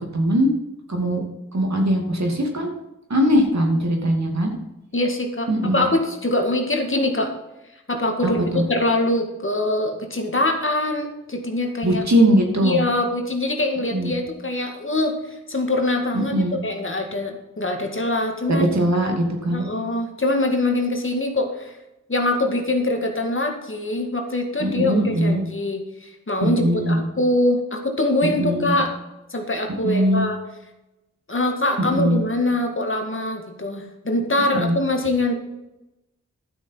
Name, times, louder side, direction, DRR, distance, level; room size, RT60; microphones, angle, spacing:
voice 1, 0.1-0.5 0.9-1.2 1.5-2.7 3.1-4.6 5.5-5.9 8.2-8.6 11.8-12.8 13.9-14.1 16.1-16.6 18.5-19.6 24.6-25.4 26.4-27.0 28.2-28.8 29.8-30.3 31.8-32.2 34.5-34.8, equal, 60° right, 2 dB, 2.6 m, -20 dB
voice 2, 4.9-7.3 7.9-12.0 12.6-15.2 15.5-18.7 19.5-21.7 22.1-28.9 29.3-30.4 31.3-35.4, left 2 dB, 40° left, 3 dB, 2.1 m, -23 dB
11.5 x 6.3 x 5.7 m, 0.94 s
cardioid pair, 55°, 31 cm